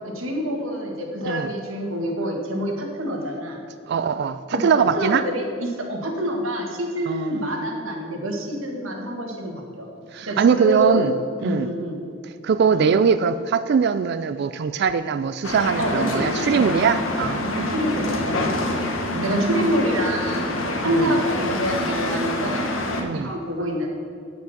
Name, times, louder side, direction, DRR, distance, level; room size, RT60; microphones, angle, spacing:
voice 1, 0.2-3.6 4.5-4.6 4.9-9.9 10.3-11.1 11.4-12.0 12.7-12.9 15.8-16.3 16.5-17.0 17.6-18.7 19.2-22.7 23.1-23.9, equal, 85° right, 1 dB, 1.8 m, -27 dB
voice 2, 3.9-5.2 7.1-7.5 10.1-11.1 11.4-11.7 12.4-17.8 19.1-19.8 20.8-21.2 23.0-23.3, right 6 dB, 55° right, 11 dB, 0.3 m, -22 dB
sound 1, 15.4-23.0, left 1 dB, 85° left, 1.2 m, -26 dB
9.0 x 6.0 x 7.2 m, 2.5 s
head